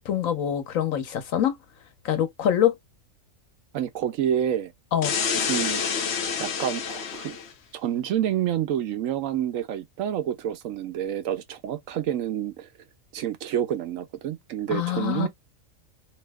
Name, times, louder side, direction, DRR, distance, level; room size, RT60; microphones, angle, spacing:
voice 1, 0.0-1.6 2.0-2.8 4.9-5.1 14.7-15.3, left 10 dB, 85° left, 1.2 m, -24 dB
voice 2, 3.7-4.7 5.4-5.8 6.4-7.4 7.7-12.7 13.1-15.3, right 10 dB, 80° right, 1.0 m, -28 dB
sound 1, 5.0-7.5, left 6 dB, 65° left, 0.8 m, -28 dB
3.0 x 2.0 x 3.4 m
omnidirectional pair, 1.3 m